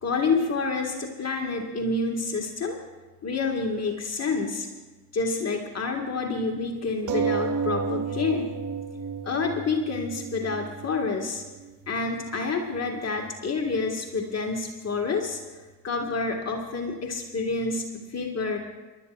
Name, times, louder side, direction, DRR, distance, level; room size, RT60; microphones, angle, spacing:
voice 1, 0.0-2.8 3.2-4.7 5.1-8.5 9.2-11.4 11.9-15.4 15.8-18.6, left 4 dB, 35° left, 2 dB, 2.0 m, -28 dB
sound 1, 7.1-12.1 12.8-12.9 13.2-13.3, right 6 dB, 45° right, 1.1 m, -31 dB
28.0 x 12.0 x 2.6 m, 1.2 s
hypercardioid pair, 60°, 45 cm